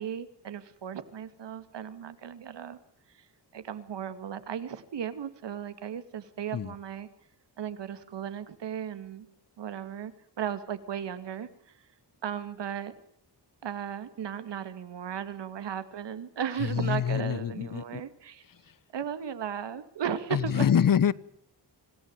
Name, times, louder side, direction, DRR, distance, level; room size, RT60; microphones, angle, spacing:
voice 1, 0.0-2.8 3.5-7.1 7.6-9.3 9.6-11.5 12.2-12.9 13.6-18.4 18.9-20.7, right 8 dB, 85° right, 2.4 m, -36 dB
voice 2, 16.6-18.0 20.3-21.1, left 8 dB, 50° left, 0.9 m, -25 dB
26.0 x 17.5 x 9.0 m
wide cardioid pair, 140°, 41 cm